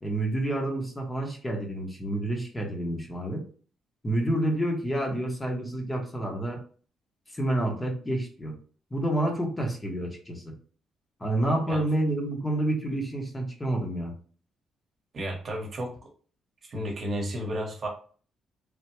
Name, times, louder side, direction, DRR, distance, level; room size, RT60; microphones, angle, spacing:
voice 1, 0.0-3.4 4.0-6.6 7.3-8.5 8.9-10.5 11.2-14.1, right 1 dB, 20° left, 1 dB, 0.8 m, -29 dB
voice 2, 15.1-15.9 16.6-17.9, equal, 45° right, 1 dB, 1.0 m, -32 dB
3.3 x 2.1 x 2.9 m, 0.43 s
cardioid pair, 90°, 0 cm